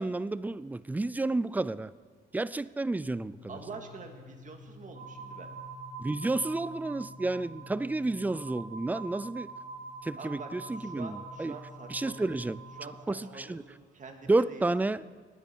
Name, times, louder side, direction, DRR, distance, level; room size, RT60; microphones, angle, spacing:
voice 1, 0.0-1.9 2.3-3.3 6.0-9.5 10.0-11.5 11.9-12.6 13.1-13.6 14.3-15.0, right 2 dB, 10° right, 18 dB, 0.3 m, -30 dB
Piano, 3.2-8.8, left 11 dB, 75° right, 2.3 m, -59 dB
voice 2, 3.5-5.5 10.2-14.9, right 4 dB, 40° right, 4 dB, 2.0 m, -46 dB
sound 1, 3.9-13.7, left 2 dB, 40° left, 1.5 m, -51 dB
sound 2, 4.9-13.4, right 4 dB, 55° right, 2.2 m, -46 dB
19.5 x 8.9 x 4.6 m, 1.5 s
cardioid pair, 90°, 20 cm